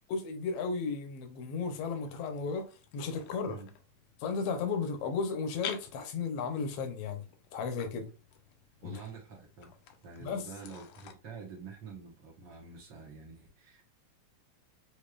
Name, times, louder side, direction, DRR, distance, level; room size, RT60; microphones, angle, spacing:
voice 1, 0.1-2.6 2.9-3.6 4.2-7.2 7.5-8.1 8.8-8.9 10.2-10.4, left 5 dB, 75° left, 1.4 m, -34 dB
sound 1, 1.9-11.1, left 9 dB, 90° left, 1.4 m, -50 dB
voice 2, 8.8-9.7 10.0-13.8, right 5 dB, 85° right, 0.9 m, -47 dB
6.4 x 3.0 x 2.4 m
omnidirectional pair, 3.8 m